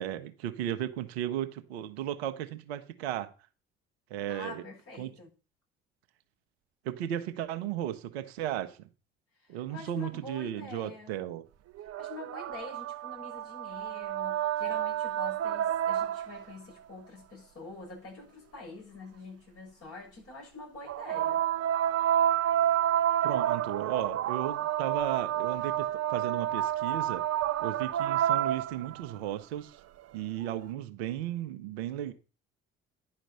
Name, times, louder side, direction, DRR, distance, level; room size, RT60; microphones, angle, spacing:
voice 1, 0.0-3.3 4.1-4.6 5.0-5.1 6.8-8.8 9.5-11.4 23.2-27.2 27.6-29.8 30.1-32.1, right 11 dB, 80° right, 1.0 m, -35 dB
voice 2, 4.3-5.3 9.4-11.1 12.0-21.4, left 3 dB, 45° left, 6.7 m, -46 dB
sound 1, 11.8-16.5 20.9-29.1 30.4-30.5, right 11 dB, 50° right, 0.9 m, -29 dB
10.5 x 5.1 x 6.6 m
hypercardioid pair, 50°, 31 cm